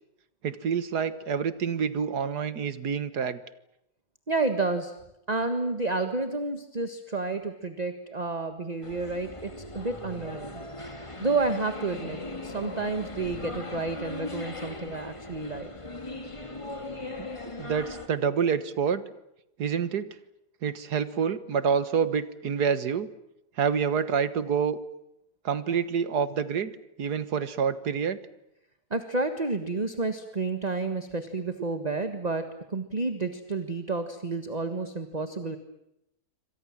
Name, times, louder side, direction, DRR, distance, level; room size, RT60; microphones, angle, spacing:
voice 1, 0.4-3.4 17.2-17.3 17.6-19.1 19.6-20.2 20.6-23.1 23.6-24.8 25.4-28.2, right 6 dB, 75° right, 13 dB, 1.9 m, -27 dB
voice 2, 4.3-4.9 5.3-10.6 11.2-15.7 28.9-35.6, right 3 dB, 25° right, 8 dB, 1.7 m, -30 dB
sound 1, 8.8-18.1, left 2 dB, 20° left, 2.3 m, -39 dB
28.0 x 25.0 x 7.5 m, 0.84 s
omnidirectional pair, 1.7 m